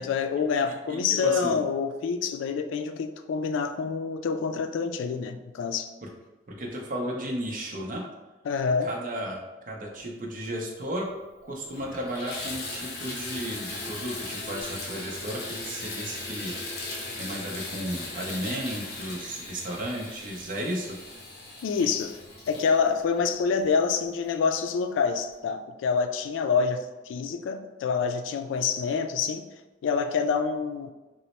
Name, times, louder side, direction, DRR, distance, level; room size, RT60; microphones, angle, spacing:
voice 1, 0.0-5.9 8.5-8.9 21.6-22.2 22.5-29.5 29.8-30.9, left 5 dB, 90° left, 9 dB, 0.3 m, -27 dB
voice 2, 0.9-1.6 6.0-6.1 6.5-8.1 8.8-9.4 9.7-11.1 11.4-16.5 17.2-21.0, equal, 45° right, 0 dB, 0.6 m, -34 dB
Water tap faucet / Bathtub (filling or washing), 11.1-11.2 11.6-24.0 24.7-24.8 25.3-25.4, left 2 dB, 60° left, 0.8 m, -38 dB
3.0 x 2.0 x 4.1 m, 1.1 s
head